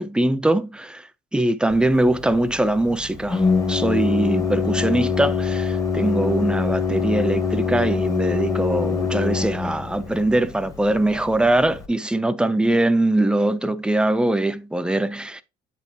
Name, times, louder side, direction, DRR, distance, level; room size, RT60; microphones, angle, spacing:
voice 1, 0.0-15.4, right 1 dB, 5° right, 0.5 m, -22 dB
Organ, 1.7-11.9, left 5 dB, 20° left, 1.0 m, -25 dB
8.1 x 4.1 x 2.8 m
cardioid pair, 110°, 17 cm